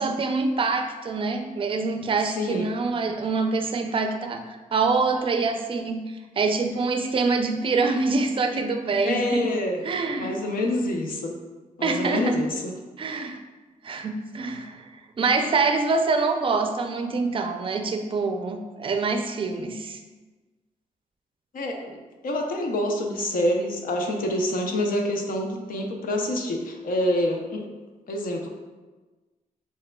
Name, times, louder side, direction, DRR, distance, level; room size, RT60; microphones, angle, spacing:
voice 1, 0.0-6.0 6.4-9.5 9.8-10.3 11.8-12.4 13.0-13.4 13.8-14.9 15.2-20.0, right 4 dB, 40° right, 5 dB, 0.4 m, -25 dB
voice 2, 2.4-2.8 9.0-9.8 10.2-11.3 11.8-12.7 21.5-27.6 28.1-28.5, left 1 dB, 85° left, 2 dB, 0.7 m, -27 dB
6.5 x 3.5 x 2.2 m, 1.3 s
wide cardioid pair, 170°, 14 cm